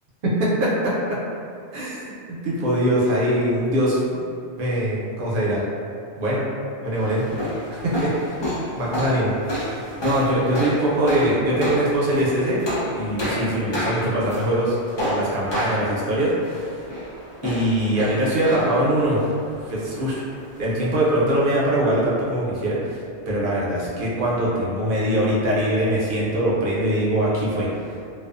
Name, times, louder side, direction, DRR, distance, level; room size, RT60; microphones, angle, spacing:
voice 1, 0.2-1.2 1.7-4.2 4.6-5.6 6.2-6.4 6.8-7.4 7.8-8.1 8.8-12.6 12.9-14.8 15.0-16.8 17.4-19.2 19.6-20.2 20.6-27.7, right 1 dB, 60° right, -6 dB, 0.6 m, -22 dB
sound 1, 6.9-21.2, equal, 45° left, 0.3 m, -30 dB
2.4 x 2.2 x 2.4 m, 2.4 s
omnidirectional pair, 1.2 m